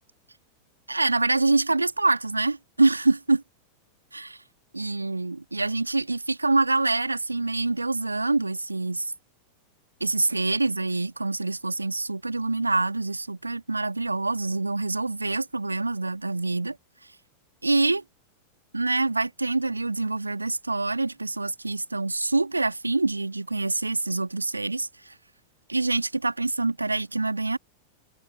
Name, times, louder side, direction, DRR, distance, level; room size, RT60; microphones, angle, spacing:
voice 1, 0.9-3.4 4.1-4.4 4.7-9.1 10.0-16.8 17.6-18.0 18.7-25.1 25.7-27.6, right 3 dB, 80° right, 2.3 m, -25 dB
figure-of-eight pair, 90°, 0 cm